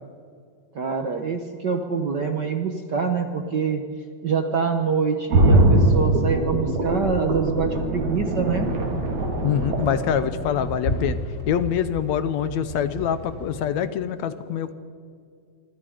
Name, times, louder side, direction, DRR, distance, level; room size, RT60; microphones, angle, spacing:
voice 1, 0.7-3.8 4.2-8.7, right 5 dB, 55° right, 5 dB, 1.2 m, -25 dB
sound 1, 5.3-11.1 11.5-11.6, right 1 dB, 70° right, 4.8 m, -22 dB
sound 2, 8.6-13.6, left 1 dB, 35° left, 0.8 m, -34 dB
voice 2, 9.4-11.2 11.5-14.7, left 8 dB, 70° left, 12 dB, 2.1 m, -25 dB
27.0 x 25.5 x 5.1 m, 2.2 s
omnidirectional pair, 3.4 m